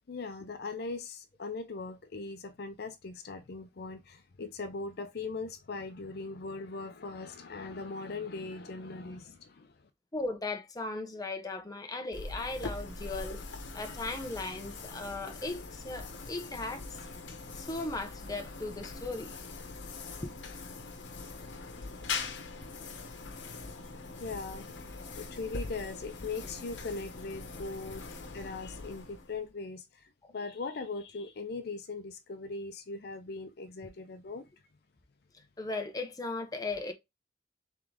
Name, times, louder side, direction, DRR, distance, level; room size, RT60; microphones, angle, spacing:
voice 1, 0.1-9.7 24.2-24.7 25.2-28.0 28.3-30.0 30.3-34.4, left 3 dB, 60° left, 0.5 m, -40 dB
voice 2, 10.1-13.4 13.7-16.8 17.5-19.3 20.2-20.3 21.4-21.6 30.2-30.3 35.6-36.9, left 2 dB, 20° left, 0.8 m, -37 dB
sound 1, 12.1-29.5, left 4 dB, 90° left, 0.9 m, -42 dB
3.7 x 3.6 x 3.4 m
head